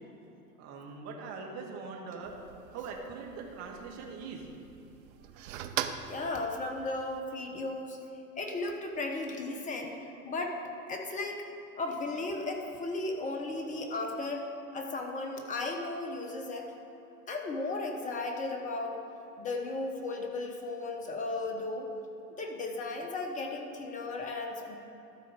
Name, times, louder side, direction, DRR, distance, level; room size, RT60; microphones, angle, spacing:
voice 1, 0.6-2.3 2.7-4.4 24.6-24.7, right 4 dB, 35° right, 0 dB, 1.6 m, -42 dB
sound 1, 2.2-7.2, right 10 dB, 55° right, 0.7 m, -42 dB
voice 2, 6.0-8.0 8.4-10.6 10.9-11.4 11.8-16.7 17.3-19.0 19.4-21.9 22.3-24.8, left 2 dB, 15° left, 2 dB, 1.0 m, -35 dB
13.0 x 4.5 x 6.4 m, 3.0 s
figure-of-eight pair, 100°, 48 cm